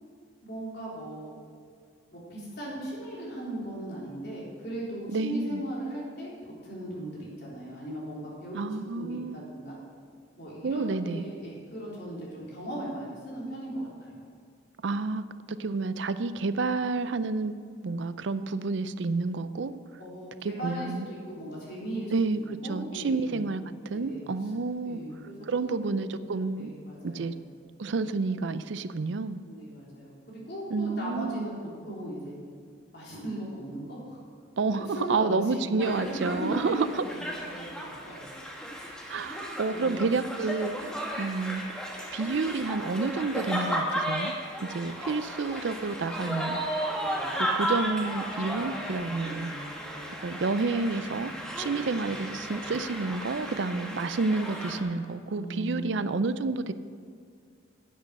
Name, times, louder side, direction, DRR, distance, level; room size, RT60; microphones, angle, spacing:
voice 1, 0.4-1.3 2.1-6.3 6.6-9.8 10.4-14.2 20.0-23.4 23.9-24.2 24.8-25.9 26.6-27.3 29.5-31.5 31.9-32.4 32.9-34.2 34.8-38.3 39.7-39.9 47.0-47.3 49.1-49.5 51.7-51.9 55.3-55.8, right 1 dB, 55° left, -5 dB, 3.6 m, -38 dB
voice 2, 5.1-5.6 8.5-9.4 10.6-11.3 14.8-15.2 15.5-17.6 17.8-19.8 20.4-21.1 22.1-25.0 25.5-26.7 27.0-27.3 27.8-29.4 30.7-31.5 34.6-37.0 39.1-41.8 42.1-44.3 44.6-46.6 47.6-49.5 50.2-56.7, right 3 dB, 65° right, 13 dB, 0.5 m, -29 dB
sound 1, 35.8-54.8, equal, 5° left, 1.2 m, -34 dB
10.0 x 8.4 x 6.5 m, 2.2 s
head